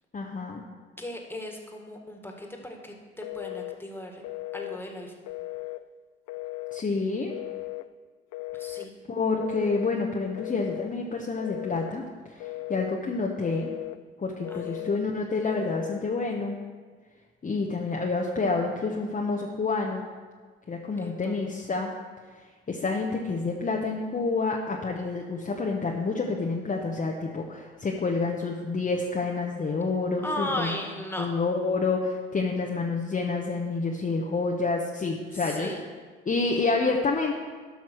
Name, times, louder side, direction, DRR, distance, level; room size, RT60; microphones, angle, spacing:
voice 1, 0.1-0.6 6.7-7.3 9.1-13.7 14.2-16.6 17.4-20.0 20.7-21.9 22.7-30.7 31.2-35.7 36.3-37.3, left 3 dB, 25° left, 0 dB, 1.0 m, -28 dB
voice 2, 1.0-4.2 4.5-5.1 8.5-8.9 14.5-14.9 21.0-21.4 30.2-31.3 35.3-35.8, left 1 dB, 5° left, 2 dB, 1.9 m, -36 dB
Telephone, 3.2-3.8 4.2-4.8 5.3-5.8 6.3-6.9 7.3-7.9 8.3-8.9 9.3-9.9 10.4-10.9 11.4-12.0 12.4-13.0 13.4-14.0 14.4-15.0 15.4-16.0, left 18 dB, 60° left, 0.5 m, -37 dB
12.0 x 5.9 x 4.5 m, 1.5 s
hypercardioid pair, 55°, 30 cm